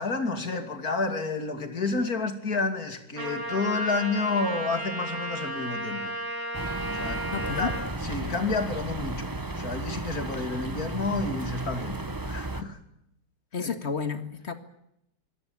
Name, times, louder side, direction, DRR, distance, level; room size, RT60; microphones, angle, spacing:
voice 1, 0.0-6.1 6.9-7.2 7.6-7.7 8.0-12.0 12.3-12.8 13.6-13.7, left 3 dB, 55° left, 7 dB, 3.3 m, -30 dB
Trumpet, 3.2-7.8, right 1 dB, 70° right, 8.5 m, -34 dB
sound 1, 6.5-12.6, right 2 dB, 15° right, 0.9 m, -34 dB
voice 2, 7.3-7.7 8.2-8.3 13.5-14.5, left 5 dB, 35° left, 10 dB, 2.1 m, -31 dB
25.5 x 18.0 x 8.8 m, 0.81 s
omnidirectional pair, 1.9 m